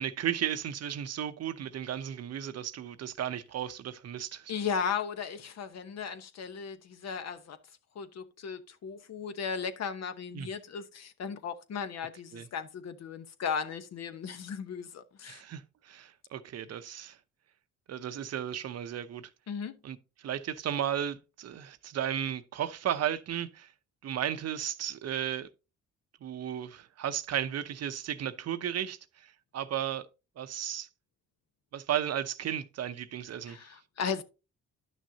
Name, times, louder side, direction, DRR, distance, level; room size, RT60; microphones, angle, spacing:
voice 1, 0.0-4.5 10.3-10.5 12.3-12.5 15.3-17.2 17.9-19.3 19.8-23.7 24.0-25.5 26.2-30.1 30.4-30.9 31.7-33.6, right 10 dB, 55° right, 0.7 m, -34 dB
voice 2, 4.5-7.6 7.9-15.4 19.5-19.8 33.5-34.2, left 6 dB, 60° left, 1.0 m, -36 dB
11.0 x 6.2 x 2.7 m
cardioid pair, 90°, 30 cm